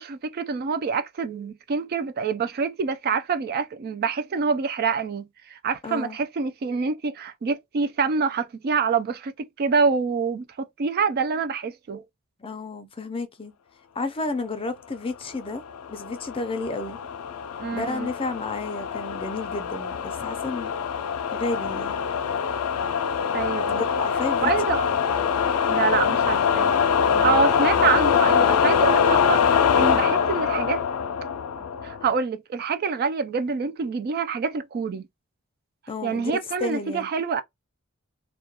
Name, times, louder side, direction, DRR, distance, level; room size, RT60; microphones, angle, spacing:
voice 1, 0.0-12.0 17.6-18.1 23.3-23.8 24.4-24.9 25.7-26.7 27.2-30.8 31.6-35.0 36.0-37.4, right 5 dB, 45° right, 0.3 m, -26 dB
voice 2, 5.8-6.2 12.4-13.5 14.0-15.6 15.9-17.0 17.7-20.7 21.3-22.0 23.8-24.5 27.1-27.4 35.9-36.3 36.6-37.1, left 2 dB, 25° left, 0.4 m, -31 dB
sound 1, 15.7-32.2, left 7 dB, 85° left, 0.4 m, -23 dB
2.3 x 2.2 x 2.8 m
head